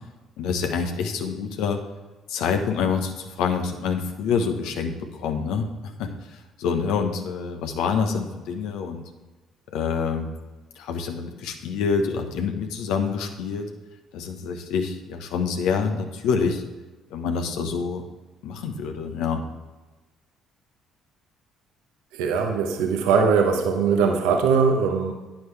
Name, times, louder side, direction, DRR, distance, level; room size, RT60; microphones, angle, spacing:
voice 1, 0.4-1.8 2.3-5.7 6.0-9.1 9.7-10.3 10.8-13.7 14.1-16.6 17.1-18.0 18.4-19.4, left 6 dB, 70° left, 5 dB, 1.1 m, -26 dB
voice 2, 22.1-25.1, right 5 dB, 75° right, 3 dB, 1.0 m, -21 dB
10.5 x 9.6 x 3.4 m, 1.2 s
hypercardioid pair, 50°, 0 cm